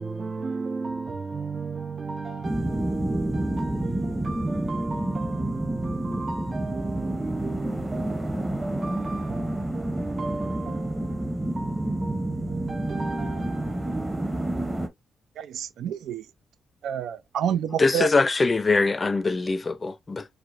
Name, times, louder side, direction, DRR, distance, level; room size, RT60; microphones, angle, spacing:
voice 1, 0.0-14.3, right 4 dB, 35° right, 0.5 m, -35 dB
sound 1, 2.4-14.9, right 1 dB, 10° right, 0.9 m, -29 dB
voice 2, 15.4-16.3 16.8-18.1, right 9 dB, 85° right, 0.4 m, -28 dB
voice 3, 17.8-20.3, left 3 dB, 30° left, 0.4 m, -22 dB
4.6 x 2.2 x 2.5 m
cardioid pair, 100°, 0 cm